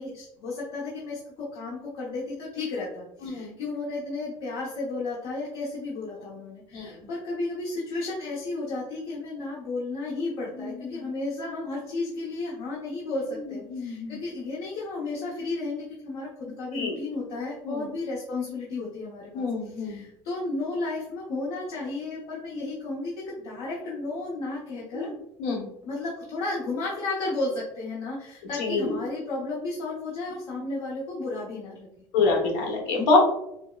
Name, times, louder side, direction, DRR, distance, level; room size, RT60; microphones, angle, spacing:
voice 1, 0.0-25.1 25.8-31.9, left 3 dB, 70° left, -5 dB, 0.9 m, -33 dB
voice 2, 3.2-3.5 6.7-7.0 10.6-11.0 13.4-14.2 16.7-16.9 17.6-17.9 19.3-20.0 22.5-22.7 24.9-25.1 25.4-25.7 28.6-28.9 32.1-33.2, left 3 dB, 90° left, 0 dB, 1.0 m, -27 dB
5.2 x 2.1 x 2.3 m, 0.82 s
cardioid pair, 140°, 10 cm